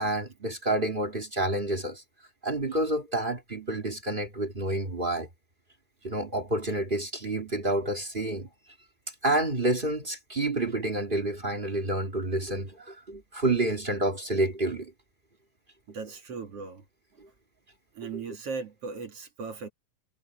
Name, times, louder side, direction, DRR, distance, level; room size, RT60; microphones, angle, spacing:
voice 1, 0.0-2.0 2.4-5.3 6.0-8.5 9.2-14.9 18.1-18.2, right 1 dB, 20° right, 1.5 m, -29 dB
voice 2, 15.9-16.8 17.9-19.7, right 5 dB, 45° right, 2.9 m, -37 dB
omnidirectional pair, 4.0 m